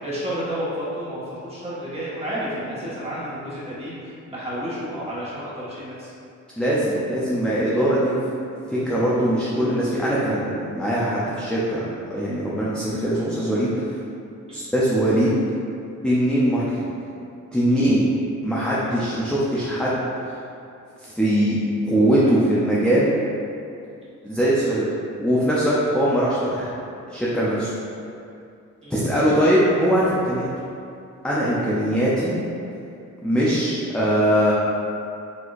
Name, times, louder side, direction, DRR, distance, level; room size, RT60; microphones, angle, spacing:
voice 1, 0.0-6.1 14.5-14.6 18.8-19.2 28.8-28.9, equal, 20° right, -9 dB, 1.5 m, -31 dB
voice 2, 6.6-8.2 8.7-11.8 12.1-14.0 14.5-15.4 16.0-16.8 17.5-18.1 18.4-20.4 21.0-21.6 21.8-23.2 24.2-24.9 25.2-26.8 27.1-27.7 28.9-30.5 31.2-32.3 33.2-34.5, equal, 5° left, -8 dB, 0.6 m, -21 dB
6.2 x 2.8 x 2.5 m, 2.5 s
cardioid pair, 105°, 32 cm